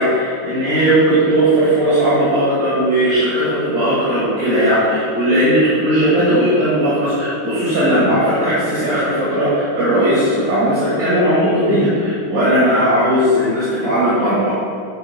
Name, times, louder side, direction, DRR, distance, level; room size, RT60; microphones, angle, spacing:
voice 1, 0.0-14.5, right 1 dB, 60° right, -11 dB, 3.1 m, -17 dB
12.0 x 4.7 x 4.2 m, 2.3 s
omnidirectional pair, 2.3 m